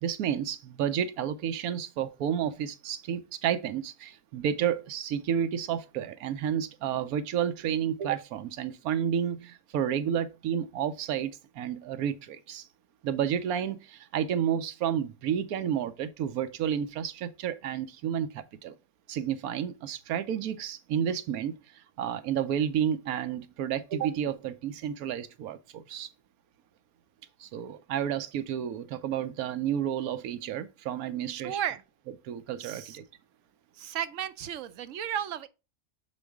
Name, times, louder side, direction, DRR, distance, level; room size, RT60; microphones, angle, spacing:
voice 1, 0.0-12.7 13.0-18.8 19.1-26.1 27.4-31.6 32.2-33.0, right 9 dB, 85° right, 1.2 m, -31 dB
voice 2, 31.2-31.8 32.6-33.0 33.7-35.5, right 10 dB, 70° right, 0.9 m, -34 dB
7.1 x 4.2 x 3.4 m
omnidirectional pair, 1.5 m